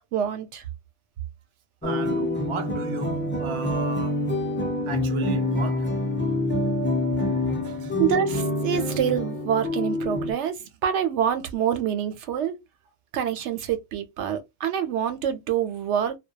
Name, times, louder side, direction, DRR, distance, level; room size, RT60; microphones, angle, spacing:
voice 1, 0.1-0.6 8.0-10.5 10.8-12.5 13.1-16.2, right 9 dB, 80° right, 0.9 m, -26 dB
sound 1, 1.8-10.3, left 1 dB, 15° left, 0.5 m, -26 dB
voice 2, 1.8-4.4 4.9-5.9 7.6-7.9, right 6 dB, 40° right, 0.4 m, -34 dB
2.2 x 2.2 x 2.7 m
omnidirectional pair, 1.2 m